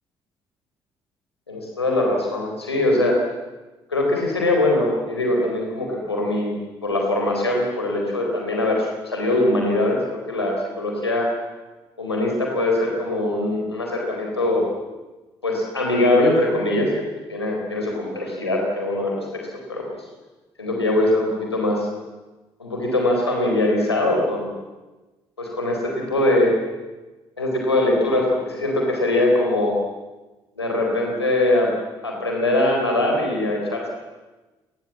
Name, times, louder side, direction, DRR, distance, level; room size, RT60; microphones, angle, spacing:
voice 1, 1.5-3.2 3.9-6.5 6.8-11.3 12.0-14.7 15.4-17.0 17.3-20.0 20.6-21.9 22.6-24.6 25.4-26.5 27.4-29.8 30.6-31.7 32.0-33.9, left 1 dB, 85° left, 0 dB, 4.3 m, -22 dB
29.0 x 20.0 x 7.4 m, 1.2 s
figure-of-eight pair, 45°, 13 cm